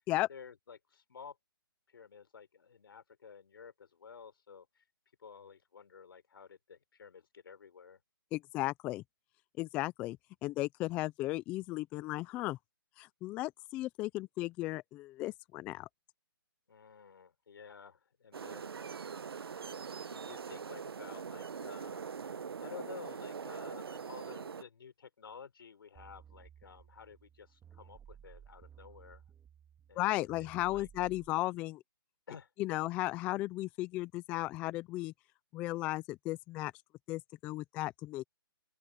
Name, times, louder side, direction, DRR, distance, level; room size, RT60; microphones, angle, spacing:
voice 1, 0.3-1.4 1.9-4.7 5.2-8.0 16.7-18.7 20.1-22.0 22.6-29.3 29.9-30.9 32.3-32.5, left 6 dB, 70° left, 4.2 m, -52 dB
voice 2, 8.3-9.0 9.6-10.2 10.4-12.6 13.0-15.9 30.0-31.8 32.6-35.1 35.5-36.7 37.1-38.2, left 18 dB, 10° left, 0.3 m, -35 dB
sound 1, 18.3-24.6, right 6 dB, 80° right, 1.0 m, -42 dB
sound 2, 26.0-31.3, right 8 dB, 10° right, 2.1 m, -57 dB
open air
hypercardioid pair, 160°, 12 cm